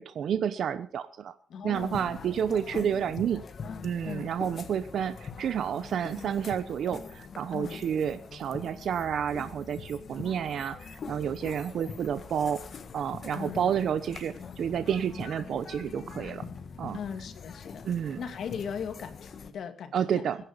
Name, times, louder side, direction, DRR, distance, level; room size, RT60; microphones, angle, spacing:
voice 1, 0.0-1.3 1.6-3.4 3.8-12.6 12.9-16.5 16.8-17.0 17.8-18.2 19.9-20.4, right 8 dB, 75° right, 12 dB, 0.9 m, -30 dB
voice 2, 1.5-2.0 2.5-3.2 3.6-4.3 7.5-7.8 13.3-13.7 16.9-17.9 18.2-20.3, left 7 dB, 70° left, 7 dB, 2.3 m, -39 dB
sound 1, 1.7-19.5, left 5 dB, 55° left, 1.6 m, -43 dB
22.0 x 10.0 x 5.2 m, 0.42 s
cardioid pair, 105°, 0 cm